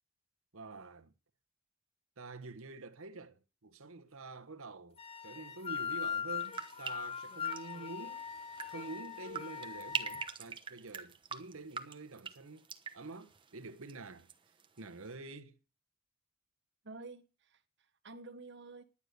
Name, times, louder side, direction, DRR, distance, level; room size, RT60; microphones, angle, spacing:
voice 1, 0.5-1.1 2.2-8.2 8.7-12.6 12.9-14.3 14.8-15.6, right 3 dB, 70° right, 1.2 m, -47 dB
sound 1, 5.0-10.3, left 7 dB, 25° left, 0.7 m, -40 dB
sound 2, 6.4-14.3 14.6-15.1, right 6 dB, 20° right, 1.0 m, -45 dB
voice 2, 16.8-18.8, right 3 dB, 50° right, 1.3 m, -50 dB
11.0 x 9.7 x 6.7 m
head